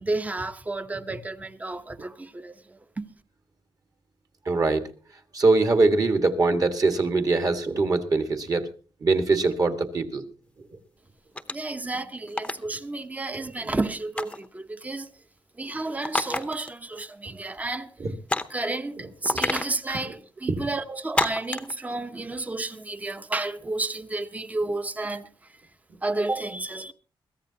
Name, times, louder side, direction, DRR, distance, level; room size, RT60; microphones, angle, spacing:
voice 1, 0.0-3.0 11.5-15.1 15.6-17.9 18.5-25.3 26.0-26.9, right 2 dB, 15° right, 0.9 m, -31 dB
voice 2, 4.5-4.9 5.3-8.7 9.0-10.2 13.6-13.7 18.0-18.1 19.3-19.5 20.1-20.2 20.5-20.7, right 3 dB, 40° right, 1.7 m, -23 dB
sound 1, 11.3-11.7 12.3-12.6 14.2-14.5 16.0-16.7 17.0-17.1 18.3-18.6 19.2-19.7 21.1-21.7, left 2 dB, 10° left, 0.8 m, -28 dB
22.5 x 15.5 x 2.9 m
wide cardioid pair, 155°, 9 cm